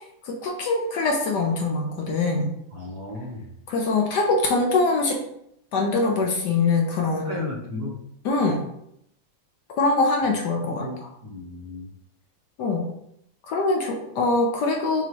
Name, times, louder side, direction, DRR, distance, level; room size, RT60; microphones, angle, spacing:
voice 1, 0.2-2.5 3.7-5.2 5.7-7.5 8.2-8.6 9.7-11.1 12.6-12.9 13.5-15.0, left 3 dB, 65° left, 1 dB, 1.2 m, -23 dB
voice 2, 2.7-3.4 7.2-8.0 10.8-11.9, left 1 dB, 60° right, -2 dB, 1.5 m, -35 dB
6.0 x 3.0 x 2.9 m, 0.76 s
omnidirectional pair, 2.1 m